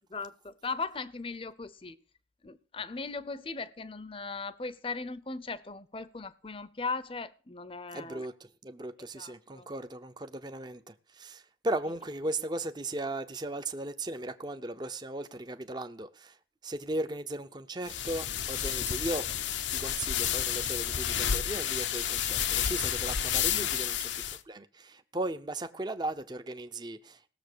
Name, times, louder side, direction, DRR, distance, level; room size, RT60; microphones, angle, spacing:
voice 1, 0.1-2.0 2.4-8.3 9.1-9.7 11.8-11.9 23.5-23.7, left 4 dB, 30° left, 0.6 m, -38 dB
voice 2, 7.9-16.4 16.6-19.3 19.7-27.3, right 1 dB, 25° right, 0.6 m, -37 dB
sound 1, 17.8-24.4, left 9 dB, 80° left, 0.8 m, -31 dB
17.5 x 7.0 x 6.7 m
head